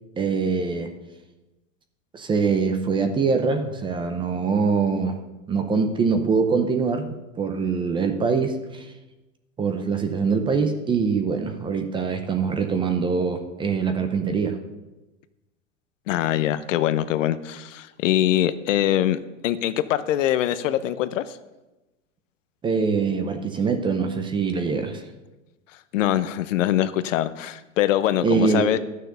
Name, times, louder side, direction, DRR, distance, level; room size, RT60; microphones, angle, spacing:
voice 1, 0.2-0.9 2.1-5.2 5.5-8.9 9.6-14.6 22.6-25.0 28.2-28.8, right 5 dB, 10° right, 7 dB, 0.6 m, -23 dB
voice 2, 16.1-19.2 19.4-21.4 25.9-28.8, left 12 dB, 70° left, 14 dB, 0.8 m, -23 dB
12.0 x 6.6 x 6.7 m, 1.1 s
supercardioid pair, 140°, 40 cm